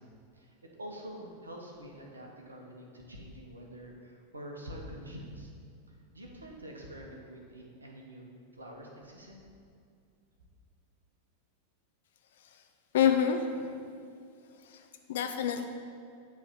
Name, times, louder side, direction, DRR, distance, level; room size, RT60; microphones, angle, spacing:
voice 1, 0.0-5.5 5.9-9.4, equal, 75° right, 0 dB, 1.2 m, -46 dB
voice 2, 12.9-13.9 14.6-15.7, left 8 dB, 60° left, 6 dB, 0.6 m, -29 dB
9.1 x 3.6 x 6.2 m, 2.4 s
figure-of-eight pair, 90°, 0 cm